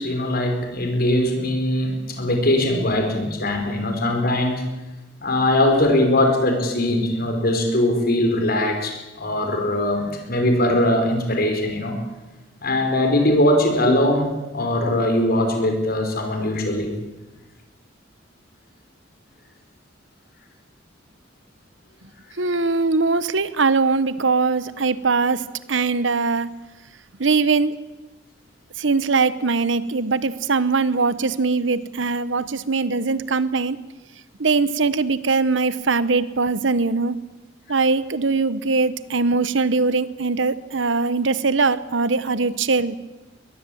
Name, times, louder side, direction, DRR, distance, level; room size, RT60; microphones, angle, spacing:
voice 1, 0.0-4.7 5.2-12.0 12.6-16.9, left 1 dB, 55° left, 4 dB, 5.0 m, -21 dB
voice 2, 22.4-25.4 25.7-26.5 27.2-27.7 28.8-33.8 34.4-37.1 37.7-43.0, right 4 dB, 70° right, 15 dB, 1.1 m, -21 dB
21.5 x 21.0 x 8.7 m, 1.1 s
head